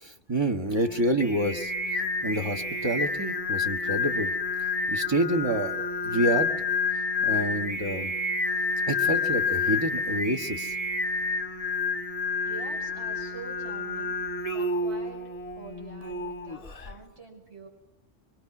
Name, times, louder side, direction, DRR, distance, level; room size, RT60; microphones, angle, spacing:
voice 1, 0.0-4.3 4.9-6.5 7.2-8.1 8.9-10.7, right 1 dB, 20° right, 5 dB, 1.5 m, -28 dB
Singing, 0.7-16.9, left 4 dB, 30° left, 1.3 m, -29 dB
voice 2, 12.4-15.2 15.6-17.7, right 3 dB, 60° right, -1 dB, 6.5 m, -46 dB
26.0 x 24.0 x 6.0 m, 0.89 s
omnidirectional pair, 1.2 m